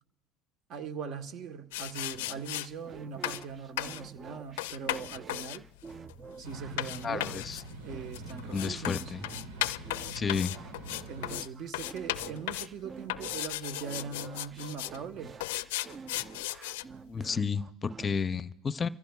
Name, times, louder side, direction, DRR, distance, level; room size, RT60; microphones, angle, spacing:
voice 1, 0.7-5.6 6.4-7.4 7.8-9.1 11.1-15.4 18.0-18.1, right 6 dB, 55° right, 1.1 m, -41 dB
sound 1, 1.7-2.7 3.2-3.5 3.8-4.0 4.6-11.5 11.7-12.7 13.1-15.0 15.4-16.8, left 16 dB, 85° left, 0.4 m, -36 dB
sound 2, 2.1-18.1, right 5 dB, 30° right, 0.5 m, -49 dB
sound 3, 6.4-11.4, right 1 dB, 80° right, 1.8 m, -45 dB
voice 2, 7.0-7.6 8.5-9.2 10.1-10.6 17.1-18.9, left 5 dB, 30° left, 0.6 m, -32 dB
28.0 x 15.0 x 2.3 m
supercardioid pair, 100°, 0 cm